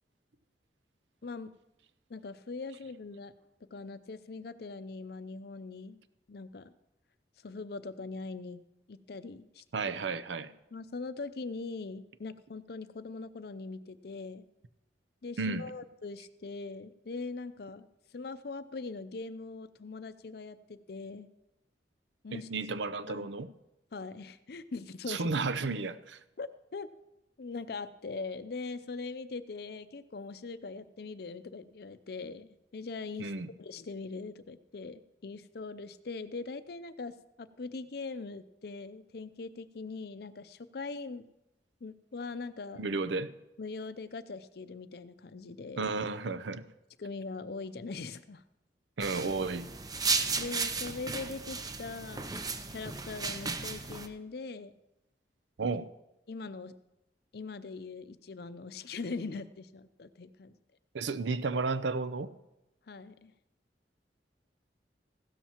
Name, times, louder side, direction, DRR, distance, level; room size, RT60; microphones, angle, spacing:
voice 1, 2.1-3.3 3.7-6.0 6.3-6.7 7.4-8.6 8.9-9.6 10.7-14.4 15.2-21.3 22.2-22.5 23.1-23.3 23.9-25.2 26.4-26.9 27.4-33.3 33.6-41.2 41.8-42.8 43.6-45.9 47.0-48.4 50.4-54.7 56.3-56.7 57.3-60.6 62.9-63.3, left 3 dB, 60° left, 0.5 m, -41 dB
voice 2, 9.7-10.5 15.4-15.6 22.3-23.5 25.1-26.2 33.2-33.5 42.8-43.3 45.8-46.6 49.0-49.7 55.6-55.9 60.9-62.3, right 3 dB, 85° right, 0.6 m, -33 dB
sound 1, 49.0-54.1, right 4 dB, 20° right, 0.6 m, -34 dB
15.5 x 13.0 x 3.0 m
head